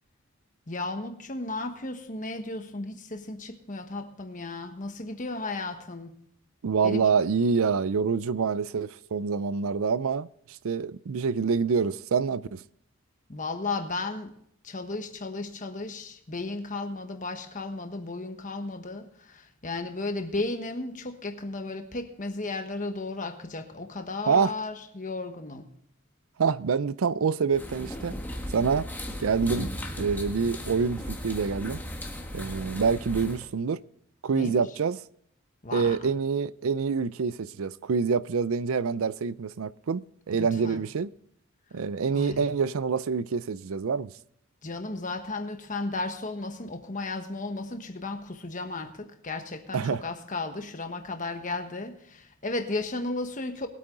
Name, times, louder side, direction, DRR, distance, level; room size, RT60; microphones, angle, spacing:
voice 1, 0.7-6.2 6.8-7.0 13.3-14.3 14.6-25.7 34.3-34.6 35.6-36.0 40.4-40.8 42.1-42.5 44.6-53.7, left 2 dB, 35° left, 1.3 m, -34 dB
voice 2, 6.6-10.3 10.6-12.6 24.3-24.5 26.4-28.2 28.5-28.9 29.2-29.7 30.0-31.8 32.3-33.8 34.2-35.0 35.7-40.0 40.3-41.1 41.7-44.1 49.7-50.0, right 5 dB, 70° right, 0.5 m, -26 dB
sound 1, 27.5-33.5, equal, 10° left, 1.4 m, -36 dB
21.5 x 8.5 x 3.8 m
head